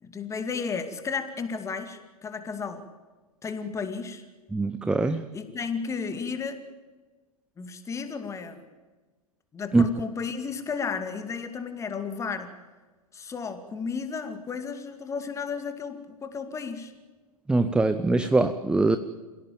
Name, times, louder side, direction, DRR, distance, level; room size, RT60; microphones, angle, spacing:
voice 1, 0.0-2.8 3.4-4.2 5.3-6.6 7.6-8.7 9.5-12.5 13.1-16.9, left 5 dB, 15° left, 8 dB, 2.3 m, -33 dB
voice 2, 4.5-5.2 9.7-9.9 17.5-19.0, right 3 dB, 5° right, 11 dB, 0.7 m, -22 dB
27.5 x 17.0 x 8.9 m, 1.3 s
figure-of-eight pair, 105°, 19 cm